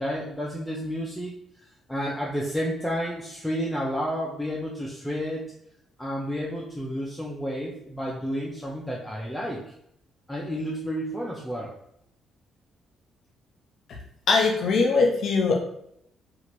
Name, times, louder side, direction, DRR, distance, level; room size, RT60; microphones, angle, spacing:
voice 1, 0.0-1.3 1.9-5.5 6.0-9.7 10.3-11.7, equal, 5° left, -4 dB, 0.5 m, -31 dB
voice 2, 14.3-15.6, left 4 dB, 65° left, 1 dB, 0.8 m, -21 dB
2.8 x 2.5 x 3.0 m, 0.73 s
cardioid pair, 90°, 0 cm